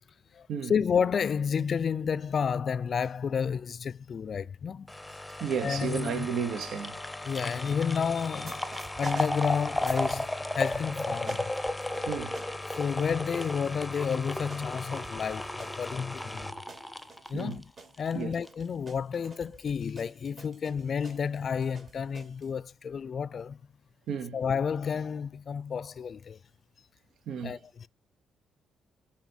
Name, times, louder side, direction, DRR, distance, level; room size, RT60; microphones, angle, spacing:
voice 1, 0.3-4.9 5.6-6.3 7.2-11.5 12.7-16.5 17.3-17.7 18.0-23.6 24.3-26.4 27.4-27.9, left 6 dB, 50° left, 0.3 m, -31 dB
sound 1, 4.9-18.1 18.5-18.6, left 1 dB, 5° left, 0.7 m, -35 dB
voice 2, 5.4-7.0 12.1-12.4 17.3-17.6 18.1-18.3 24.1-24.4 27.3-27.6, right 7 dB, 75° right, 0.9 m, -32 dB
sound 2, 8.3-10.4 10.7-22.5, right 3 dB, 45° right, 2.8 m, -50 dB
8.0 x 4.3 x 5.4 m
cardioid pair, 90°, 0 cm